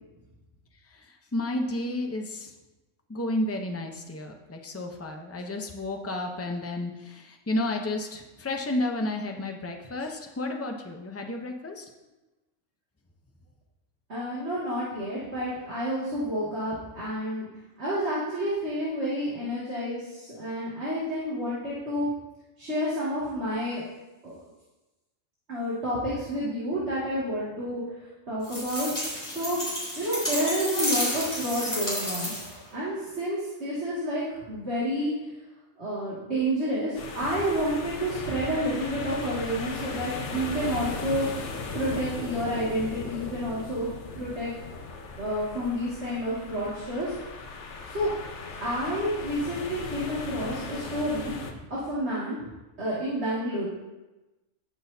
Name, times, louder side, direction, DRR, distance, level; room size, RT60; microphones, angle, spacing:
voice 1, 1.3-2.5 3.1-11.8, left 1 dB, 15° left, 3 dB, 0.7 m, -31 dB
voice 2, 14.1-17.5 17.8-22.1 22.6-23.9 24.2-24.3 25.5-28.9 29.3-29.6 30.0-32.3 32.7-35.1 35.8-41.3 41.7-43.9 44.1-44.5 45.2-47.1 47.9-48.1 48.6-52.5 52.8-53.7, equal, 55° right, -9 dB, 2.6 m, -29 dB
sound 1, 28.4-32.6, equal, 30° left, 3.6 m, -31 dB
sound 2, 37.0-51.5, left 4 dB, 65° left, 1.2 m, -37 dB
17.5 x 6.3 x 2.8 m, 1.1 s
omnidirectional pair, 1.3 m